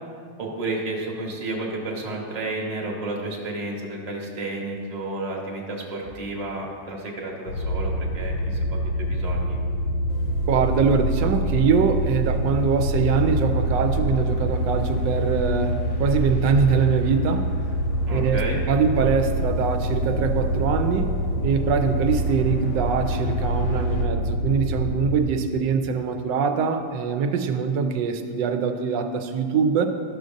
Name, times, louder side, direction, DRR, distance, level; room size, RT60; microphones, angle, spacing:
voice 1, 0.4-9.6 18.1-18.6, right 2 dB, 30° right, -2 dB, 0.9 m, -31 dB
sound 1, 7.5-25.3, equal, 75° left, 1.4 m, -26 dB
sound 2, 10.1-24.1, right 2 dB, 60° left, 0.8 m, -34 dB
voice 2, 10.5-17.6 18.1-29.9, right 6 dB, 85° right, 6 dB, 1.2 m, -23 dB
12.5 x 6.4 x 2.5 m, 2.2 s
omnidirectional pair, 1.9 m